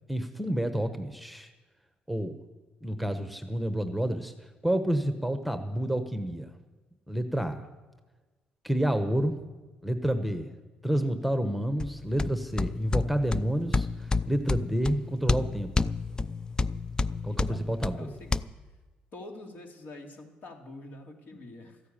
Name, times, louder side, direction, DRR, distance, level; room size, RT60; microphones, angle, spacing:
voice 1, 0.1-1.5 2.1-2.4 2.8-4.3 4.6-6.5 7.1-7.6 8.6-9.4 9.8-10.5 10.8-15.7 17.2-18.1, right 1 dB, ahead, 8 dB, 1.1 m, -29 dB
sound 1, 11.8-18.4, left 3 dB, 25° left, 0.5 m, -30 dB
voice 2, 17.3-18.5 19.1-21.8, left 2 dB, 60° left, 2 dB, 3.0 m, -46 dB
13.5 x 9.4 x 9.0 m, 1.3 s
cardioid pair, 85°, 3 cm